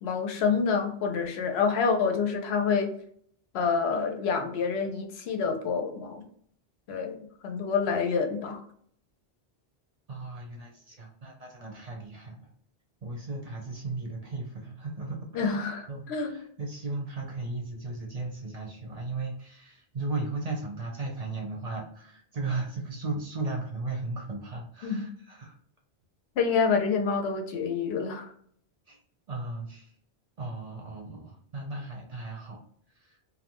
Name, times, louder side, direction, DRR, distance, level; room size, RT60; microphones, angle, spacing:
voice 1, 0.0-2.9 3.5-6.2 6.9-8.6 15.3-16.3 24.8-25.1 26.4-28.3, left 5 dB, 80° left, 4 dB, 0.8 m, -27 dB
voice 2, 10.1-12.4 13.0-15.6 15.9-25.5 28.9-29.0 29.3-29.9 30.4-32.6 32.9-33.2, right 3 dB, 45° right, 0 dB, 0.6 m, -36 dB
2.6 x 2.1 x 2.9 m, 0.62 s
omnidirectional pair, 1.1 m